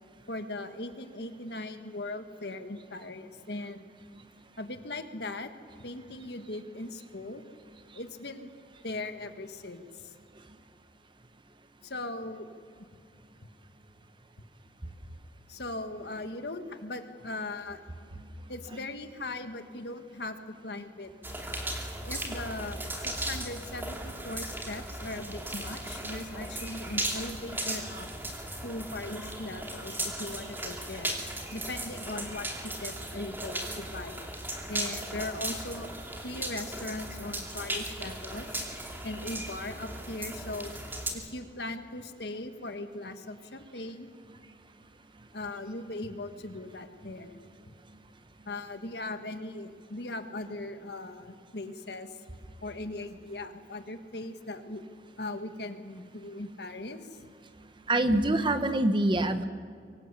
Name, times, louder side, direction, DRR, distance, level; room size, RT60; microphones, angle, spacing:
voice 1, 0.3-3.9 4.6-5.5 5.8-7.4 7.9-8.5 8.8-10.1 11.8-12.5 14.9-15.0 15.5-17.9 18.5-21.1 22.0-28.1 28.6-31.1 31.5-34.2 34.7-35.9 36.2-38.6 39.0-40.7 41.1-44.1 45.3-47.4 47.7-47.8 48.4-52.2 52.6-54.8 55.2-57.2, left 2 dB, 65° left, 8 dB, 1.7 m, -39 dB
sound 1, 21.2-41.1, right 1 dB, 10° right, 2.7 m, -37 dB
voice 2, 57.9-59.4, right 1 dB, 30° right, 9 dB, 1.1 m, -25 dB
24.0 x 19.0 x 8.4 m, 2.4 s
head